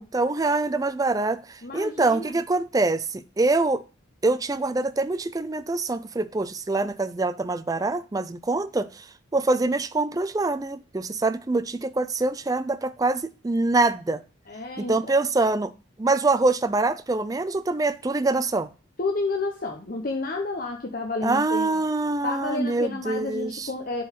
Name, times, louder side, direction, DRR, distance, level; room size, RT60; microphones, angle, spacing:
voice 1, 0.1-3.8 4.2-9.1 9.3-14.2 14.8-15.7 16.0-18.7 21.2-23.7, right 3 dB, 15° right, 0.3 m, -25 dB
voice 2, 1.6-2.4 14.5-15.2 19.0-21.7 22.2-24.1, left 3 dB, 45° left, 0.8 m, -30 dB
7.4 x 3.9 x 5.7 m
head